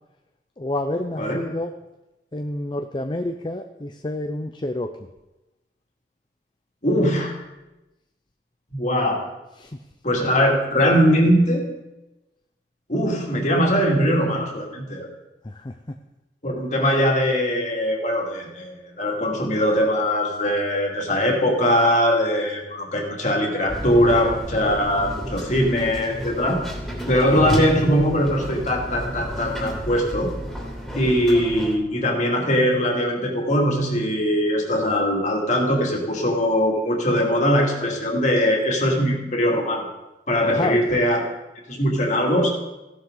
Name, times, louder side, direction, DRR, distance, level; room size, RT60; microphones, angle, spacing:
voice 1, 0.6-1.7 2.3-4.9 9.6-9.8 15.4-15.8 40.5-40.8, left 1 dB, 25° left, 6 dB, 0.6 m, -28 dB
voice 2, 6.8-7.3 8.7-9.2 10.0-11.6 12.9-15.1 16.4-26.6 27.1-30.3 30.9-39.9 40.3-41.2 41.7-42.5, equal, 45° left, 0 dB, 2.6 m, -21 dB
sound 1, 23.7-31.8, equal, ahead, 2.9 m, -31 dB
16.0 x 11.5 x 4.0 m, 1.0 s
head